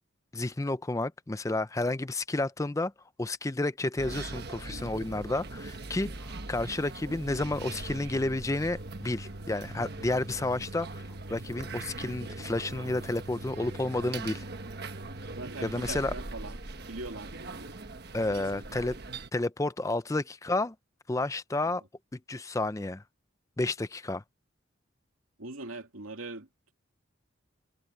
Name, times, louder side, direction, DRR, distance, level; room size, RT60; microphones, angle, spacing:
voice 1, 0.3-2.9 3.2-14.4 15.6-16.1 18.1-19.0 19.3-20.7 21.1-21.8 22.1-23.0 23.6-24.2, left 2 dB, 15° left, 0.4 m, -31 dB
sound 1, 4.0-19.3, right 2 dB, 50° right, 1.3 m, -41 dB
voice 2, 15.3-16.6 16.9-17.7 18.3-18.7 25.4-26.7, right 2 dB, 90° right, 2.5 m, -42 dB
head